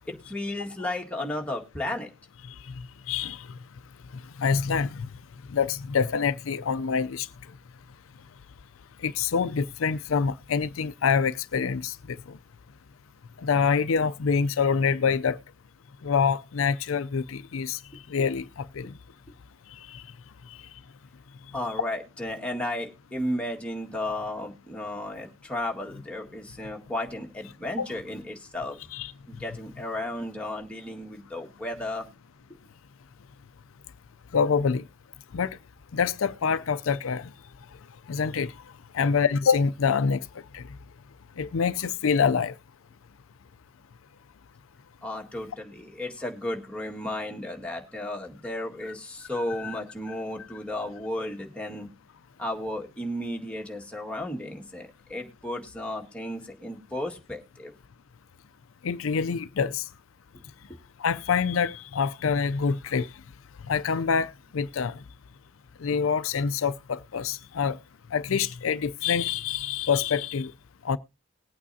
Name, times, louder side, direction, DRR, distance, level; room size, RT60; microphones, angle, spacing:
voice 1, 0.1-2.1 21.5-28.8 29.3-32.1 45.0-51.9 52.4-57.7 60.7-60.8, left 1 dB, 5° left, 1.8 m, -34 dB
voice 2, 3.1-3.5 4.4-5.1 5.5-7.3 9.0-12.2 13.4-15.4 16.0-17.8 18.1-18.9 19.9-20.0 27.8-27.9 28.9-29.1 34.3-34.8 35.3-35.6 35.9-37.3 38.1-38.5 38.9-40.2 40.5-40.6 41.4-42.5 49.6-49.7 58.8-59.8 61.0-63.1 63.7-65.0 65.8-67.8 68.1-70.5 70.8-71.0, left 6 dB, 80° left, 0.5 m, -26 dB
20.0 x 8.7 x 2.7 m
head